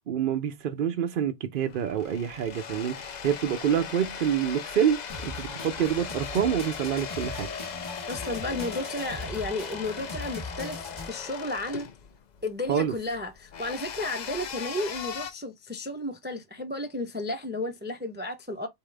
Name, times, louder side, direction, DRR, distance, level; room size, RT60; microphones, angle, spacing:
voice 1, 0.1-7.5 12.7-12.9, right 9 dB, 60° right, 0.7 m, -27 dB
sound 1, 1.6-15.3, left 7 dB, 50° left, 0.6 m, -39 dB
sound 2, 5.1-11.1, left 2 dB, 25° left, 1.0 m, -40 dB
voice 2, 8.1-11.9 12.4-18.7, left 2 dB, 10° right, 0.5 m, -33 dB
4.3 x 3.7 x 3.3 m
omnidirectional pair, 1.1 m